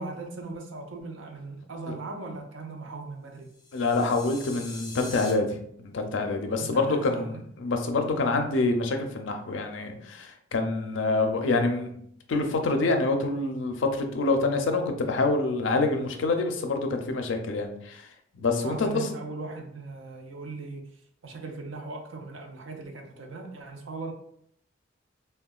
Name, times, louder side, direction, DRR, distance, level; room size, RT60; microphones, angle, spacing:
voice 1, 0.0-3.5 6.6-7.4 18.6-20.8 21.2-24.1, right 3 dB, 75° right, 3 dB, 0.6 m, -38 dB
sound 1, 3.5-5.3, left 3 dB, 25° left, 0.6 m, -43 dB
voice 2, 3.7-11.9 12.3-18.0 18.3-19.1, left 3 dB, 70° left, 4 dB, 0.5 m, -26 dB
3.6 x 2.2 x 2.3 m, 0.68 s
head